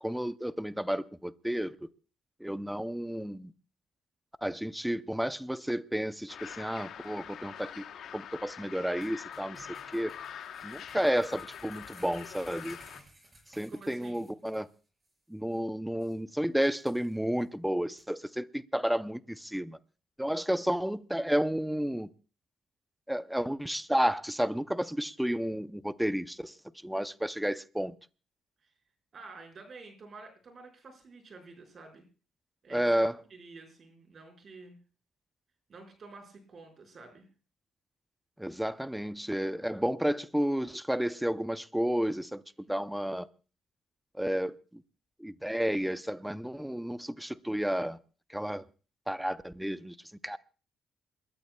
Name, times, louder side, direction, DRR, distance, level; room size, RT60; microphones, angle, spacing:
voice 1, 0.0-1.8 2.4-3.5 4.4-7.8 8.1-9.7 9.9-10.1 10.6-12.8 13.6-14.7 15.3-19.8 20.2-22.1 23.1-26.5 26.8-27.9 32.7-33.2 38.4-42.4 42.7-43.3 44.2-44.8 45.2-48.0 48.3-48.6 49.1-50.0 50.2-50.4, equal, 5° right, 0.6 m, -31 dB
sound 1, 6.3-13.0, left 9 dB, 70° left, 1.0 m, -44 dB
sound 2, 9.0-14.7 15.0-15.1 15.5-15.6 16.0-16.2 16.6-17.4 18.0-18.1, right 1 dB, 20° right, 5.8 m, -57 dB
voice 2, 13.7-14.3 29.1-32.0 32.6-32.9 33.3-34.7 35.7-37.3, right 3 dB, 45° right, 4.9 m, -50 dB
28.5 x 13.0 x 2.3 m
cardioid pair, 90°, 0 cm